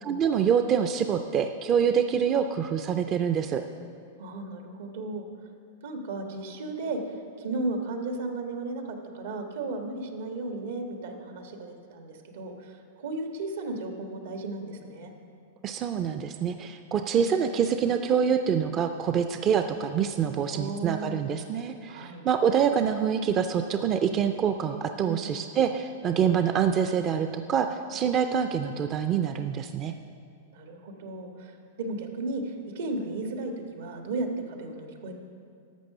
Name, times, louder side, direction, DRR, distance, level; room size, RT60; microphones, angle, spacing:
voice 1, 0.0-3.6 15.6-29.9, right 7 dB, 25° right, 7 dB, 0.4 m, -26 dB
voice 2, 4.2-5.3 5.8-15.1 17.1-17.3 20.5-21.2 21.9-22.2 25.0-25.4 30.5-35.1, right 2 dB, 75° right, 4 dB, 1.4 m, -35 dB
11.5 x 6.7 x 6.6 m, 2.3 s
supercardioid pair, 150°, 0 cm